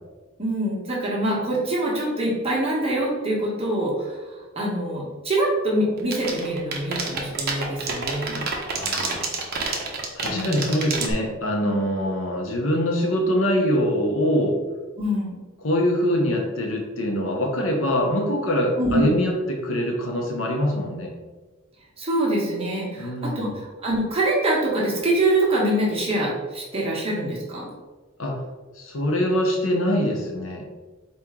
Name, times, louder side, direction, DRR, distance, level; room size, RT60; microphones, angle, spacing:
voice 1, 0.4-8.4 10.3-10.6 15.0-15.3 18.8-19.1 22.0-27.7, right 1 dB, 30° right, -5 dB, 1.2 m, -24 dB
sound 1, 6.0-11.1, right 5 dB, 50° right, 0.8 m, -27 dB
voice 2, 8.7-9.3 10.1-14.6 15.6-21.1 23.0-23.6 28.2-28.4 28.7-30.6, equal, 85° left, 1 dB, 0.9 m, -24 dB
4.3 x 2.9 x 3.6 m, 1.3 s
head